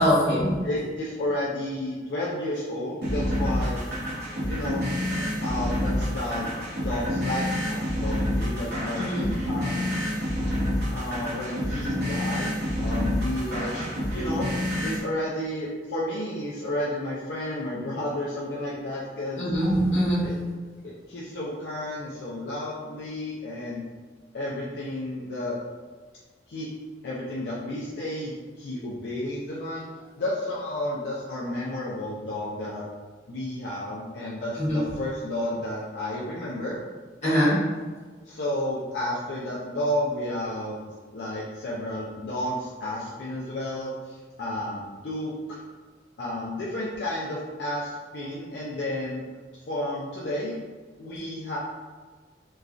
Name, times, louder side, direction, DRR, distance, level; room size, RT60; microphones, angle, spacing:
voice 1, 0.0-0.6 8.9-9.3 19.4-20.2 34.6-34.8 37.2-37.5, equal, 40° left, -10 dB, 1.3 m, -23 dB
voice 2, 0.6-4.0 4.4-4.8 5.2-6.5 6.8-9.1 9.5-9.9 10.9-12.5 12.8-13.9 14.1-14.5 14.8-19.5 20.2-20.4 20.8-23.9 24.3-25.5 26.5-26.7 27.0-29.8 30.2-32.8 33.3-36.8 37.2-37.6 38.3-40.8 41.1-45.6 46.2-49.2 49.6-50.6 51.0-51.6, left 1 dB, 70° left, -6 dB, 0.4 m, -32 dB
sound 1, 3.0-15.0, left 1 dB, 65° right, 1.0 m, -28 dB
3.0 x 2.3 x 2.4 m, 1.4 s
head